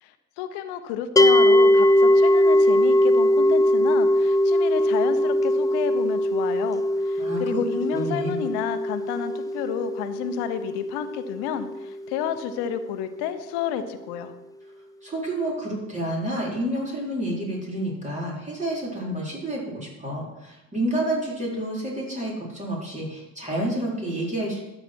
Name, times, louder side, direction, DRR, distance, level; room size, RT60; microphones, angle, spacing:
voice 1, 0.0-14.3, left 8 dB, 65° left, 10 dB, 1.2 m, -31 dB
sound 1, 1.2-12.3, left 1 dB, 10° left, 0.5 m, -21 dB
voice 2, 7.2-7.6 7.9-8.4 15.0-24.6, right 1 dB, 15° right, -4 dB, 4.2 m, -29 dB
12.5 x 7.8 x 4.6 m, 0.97 s
hypercardioid pair, 60°, 42 cm